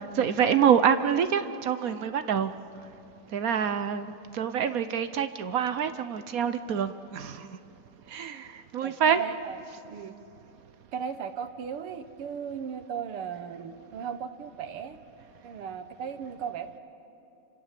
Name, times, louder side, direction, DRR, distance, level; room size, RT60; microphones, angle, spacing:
voice 1, 0.0-2.5 3.3-7.5 8.1-9.2, right 8 dB, 60° right, 11 dB, 0.9 m, -26 dB
voice 2, 8.8-9.6 9.9-10.1 10.9-15.0 15.4-16.8, right 7 dB, 85° right, 9 dB, 2.1 m, -36 dB
29.5 x 26.5 x 7.6 m, 2.7 s
omnidirectional pair, 2.4 m